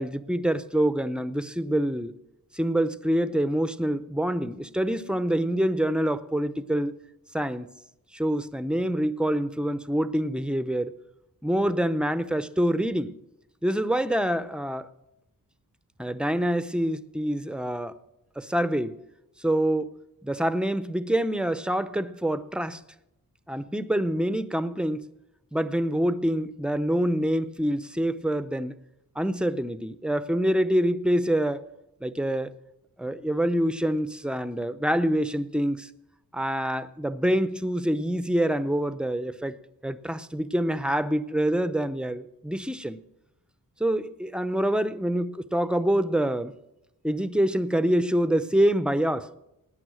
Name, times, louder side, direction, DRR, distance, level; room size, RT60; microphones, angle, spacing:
voice 1, 0.0-2.2 2.5-7.0 7.3-7.7 8.1-10.9 11.4-13.1 13.6-14.9 16.0-17.9 18.4-19.0 19.4-19.9 20.2-22.8 23.5-25.1 25.5-28.7 29.2-31.6 32.0-32.5 33.0-35.9 36.3-39.6 39.8-43.0 43.8-46.5 47.0-49.3, right 1 dB, 5° right, 0.7 m, -26 dB
17.5 x 9.7 x 6.3 m
wide cardioid pair, 105°, 35 cm